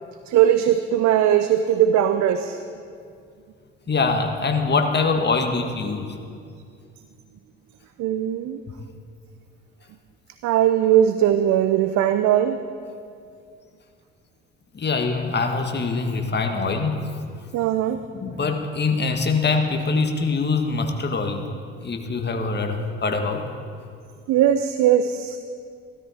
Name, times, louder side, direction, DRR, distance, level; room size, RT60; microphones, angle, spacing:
voice 1, 0.3-2.6 8.0-8.6 10.4-12.6 17.5-18.0 24.3-25.4, right 10 dB, 55° right, 10 dB, 0.7 m, -19 dB
voice 2, 3.9-6.2 14.7-17.1 18.1-21.4 21.8-23.5, left 4 dB, 30° left, 4 dB, 1.7 m, -23 dB
16.0 x 13.0 x 4.4 m, 2.3 s
hypercardioid pair, 55°, 33 cm